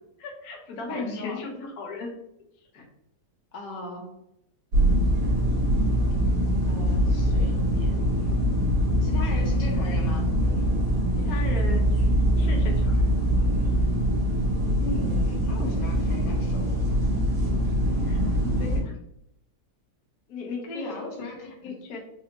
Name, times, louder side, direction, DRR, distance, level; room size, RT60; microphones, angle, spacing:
voice 1, 0.2-2.1 2.7-2.9 11.1-11.9 12.4-12.9 18.0-18.9 20.3-21.0 21.6-22.0, left 3 dB, 60° left, 0 dB, 1.2 m, -36 dB
voice 2, 0.9-1.4 3.5-4.1 6.7-7.9 9.0-10.3 14.8-17.1 20.7-21.7, left 2 dB, 80° left, 0 dB, 1.4 m, -38 dB
sound 1, 4.7-18.8, equal, 60° right, 1.7 m, -23 dB
4.3 x 2.7 x 2.9 m, 0.78 s
omnidirectional pair, 1.9 m